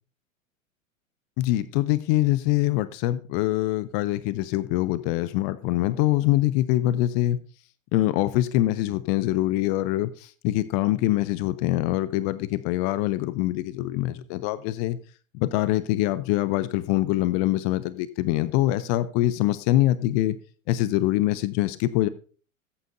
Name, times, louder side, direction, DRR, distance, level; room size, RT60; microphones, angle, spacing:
voice 1, 1.4-7.4 7.9-15.0 15.3-20.4 20.7-22.1, left 15 dB, 30° left, 0.4 m, -24 dB
14.5 x 8.5 x 2.6 m
figure-of-eight pair, 95°, 40 cm